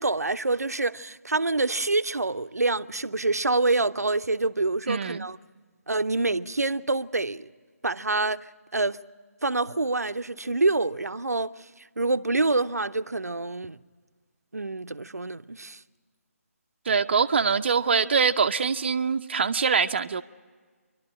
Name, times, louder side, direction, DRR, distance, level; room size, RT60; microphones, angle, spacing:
voice 1, 0.0-5.4 5.9-7.5 7.8-9.0 9.4-11.6 12.0-13.8 14.5-15.8, right 3 dB, 85° right, 0.7 m, -26 dB
voice 2, 4.9-5.3 16.9-20.2, right 5 dB, 45° right, 0.6 m, -24 dB
28.0 x 12.0 x 8.6 m
figure-of-eight pair, 155°, 8 cm